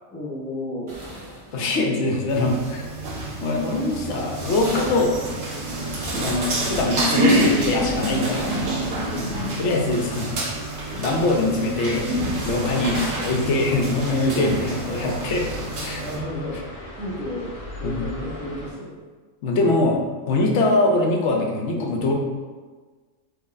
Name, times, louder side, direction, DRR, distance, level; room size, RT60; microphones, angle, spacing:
voice 1, 0.1-0.9 6.1-6.4 9.0-9.8 12.7-13.4 13.7-13.9 15.9-16.6 17.0-17.5 17.8-19.0, left 1 dB, 10° left, -7 dB, 0.8 m, -33 dB
sound 1, 0.9-2.2 4.6-6.0 8.3-9.5 12.9-14.3, equal, 40° right, 0.4 m, -37 dB
voice 2, 1.5-2.9 3.4-5.2 6.2-8.6 9.6-10.4 11.0-12.1 12.4-15.5 15.8-16.0 17.8-18.1 19.4-20.0 20.3-22.1, left 2 dB, 65° left, 0 dB, 0.9 m, -23 dB
sound 2, 2.3-16.2, right 1 dB, 70° right, 1.3 m, -27 dB
sound 3, 4.4-18.7, left 1 dB, 40° left, 0.5 m, -39 dB
5.1 x 3.2 x 2.5 m, 1.4 s
omnidirectional pair, 1.4 m